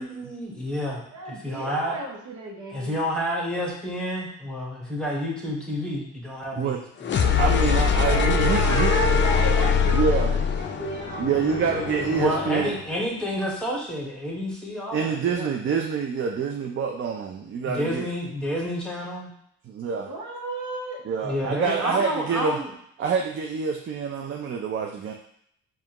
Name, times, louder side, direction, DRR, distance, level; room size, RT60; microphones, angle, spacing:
voice 1, 0.0-1.0 1.4-1.9 2.7-6.8 12.0-15.5 17.6-19.3 21.2-22.7, equal, 5° left, -3 dB, 1.1 m, -29 dB
voice 2, 1.1-3.0 8.0-12.0 20.0-21.0, right 2 dB, 80° right, -1 dB, 1.0 m, -33 dB
sound 1, 7.0-12.9, left 6 dB, 40° left, 0.4 m, -23 dB
voice 3, 7.4-9.1 9.9-10.3 11.2-12.7 14.9-18.1 19.6-20.1 21.1-22.6 23.0-25.1, right 6 dB, 45° right, 2 dB, 0.5 m, -26 dB
4.8 x 2.5 x 2.9 m, 0.71 s
cardioid pair, 90°, 30 cm